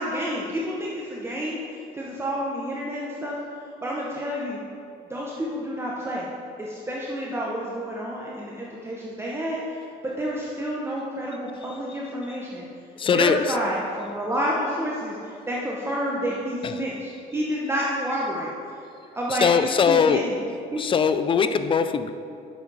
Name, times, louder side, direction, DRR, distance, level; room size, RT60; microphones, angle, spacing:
voice 1, 0.0-1.6 1.9-3.4 3.8-4.6 5.1-6.3 6.6-12.7 13.1-18.5 19.1-20.4 20.7-20.8, equal, 15° right, -4 dB, 0.8 m, -29 dB
voice 2, 13.0-13.6 16.6-16.8 19.3-20.3 20.8-22.1, left 6 dB, 30° left, 11 dB, 0.4 m, -21 dB
7.2 x 6.0 x 4.1 m, 2.5 s
cardioid pair, 110°, 17 cm